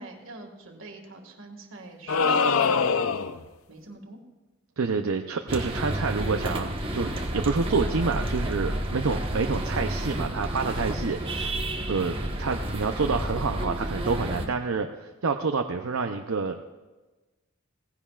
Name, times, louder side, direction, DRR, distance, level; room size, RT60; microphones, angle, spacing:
voice 1, 0.0-3.3 3.7-4.2, right 2 dB, 70° right, 3 dB, 2.0 m, -45 dB
sound 1, 2.1-3.5, left 5 dB, 80° left, 0.6 m, -23 dB
voice 2, 4.8-16.6, right 4 dB, 85° right, 4 dB, 0.7 m, -28 dB
sound 2, 5.5-14.5, right 1 dB, 25° right, 1.2 m, -30 dB
17.5 x 15.5 x 2.4 m, 1.2 s
head